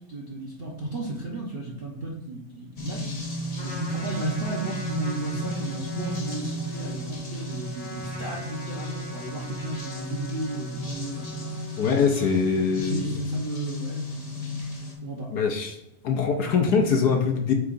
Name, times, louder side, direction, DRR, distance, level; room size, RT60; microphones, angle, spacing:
voice 1, 0.0-3.1 3.6-11.5 12.8-14.8 15.0-15.3, right 2 dB, 45° right, -4 dB, 0.7 m, -34 dB
sound 1, 2.8-14.9, equal, 25° left, 0.9 m, -34 dB
Trumpet, 3.5-12.3, left 1 dB, 45° left, 2.6 m, -42 dB
voice 2, 11.8-13.1 15.3-15.8 16.0-17.5, left 5 dB, 65° left, 3 dB, 1.1 m, -23 dB
8.5 x 4.8 x 2.5 m, 0.87 s
omnidirectional pair, 2.2 m